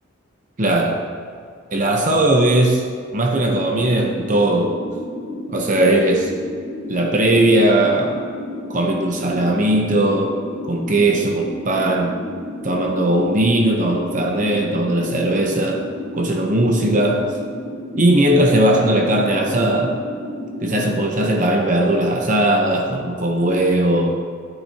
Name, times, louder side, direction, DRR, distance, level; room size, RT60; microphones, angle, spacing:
voice 1, 0.6-1.1 1.7-4.8 5.5-6.4 6.9-8.2 8.7-10.4 10.6-12.2 12.6-15.9 16.1-17.3 17.9-20.0 20.6-24.1, right 1 dB, 40° right, 1 dB, 0.8 m, -18 dB
sound 1, 4.0-20.8, left 1 dB, 45° left, 2.6 m, -32 dB
14.0 x 9.0 x 2.9 m, 2.2 s
head